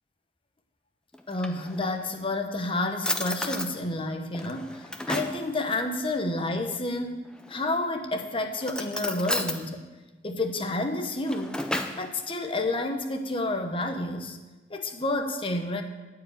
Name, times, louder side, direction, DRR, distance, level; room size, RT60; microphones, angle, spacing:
Drawer open or close, 1.1-2.1 2.6-2.7 3.0-3.7 4.3-5.4 7.3-7.9 8.6-9.6 11.0-12.1, left 1 dB, 5° left, 0.7 m, -32 dB
voice 1, 1.3-9.9 10.2-11.6 12.0-14.4 14.7-15.8, left 2 dB, 30° left, 6 dB, 0.9 m, -30 dB
14.0 x 4.9 x 9.1 m, 1.2 s
head